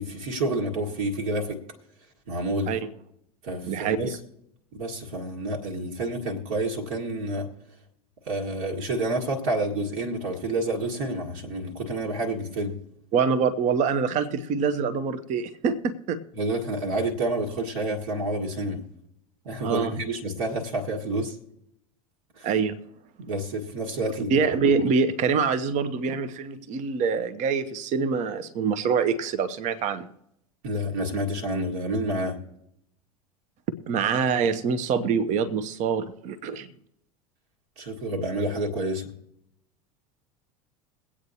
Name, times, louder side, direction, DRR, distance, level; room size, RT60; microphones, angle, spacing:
voice 1, 0.0-1.6 2.3-2.7 3.4-4.2 4.7-7.5 8.2-12.8 16.4-18.8 19.4-21.4 22.4-22.5 23.2-24.5 30.6-32.4 37.8-39.1, right 1 dB, 60° right, 1.7 m, -29 dB
voice 2, 3.6-4.2 13.1-16.2 19.6-20.0 22.4-22.8 24.3-30.1 33.9-36.7, right 5 dB, 40° right, 0.8 m, -25 dB
22.5 x 8.5 x 2.8 m
figure-of-eight pair, 75°, 20 cm